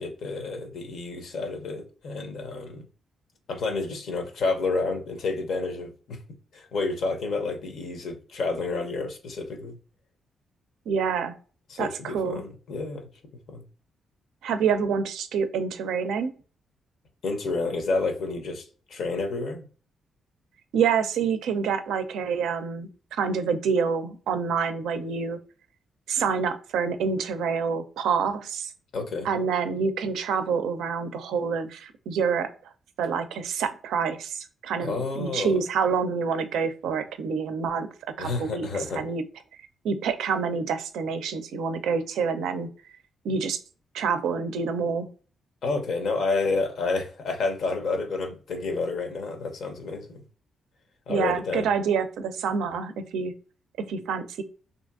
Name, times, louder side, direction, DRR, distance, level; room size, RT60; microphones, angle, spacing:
voice 1, 0.0-2.8 3.5-6.2 6.5-9.8 11.7-13.1 13.5-13.6 17.2-19.6 28.9-29.3 34.8-35.6 38.2-39.0 45.6-50.2 51.1-51.7, left 3 dB, 70° left, 0.7 m, -30 dB
voice 2, 10.9-11.3 11.8-12.4 14.4-16.3 20.7-22.9 23.2-25.4 26.1-28.7 29.2-32.5 33.0-37.9 38.2-38.7 39.0-39.2 39.8-42.7 43.2-43.6 43.9-45.1 51.1-53.3 53.8-54.4, right 6 dB, 80° right, 0.4 m, -27 dB
2.7 x 2.5 x 2.3 m
hypercardioid pair, 45°, 0 cm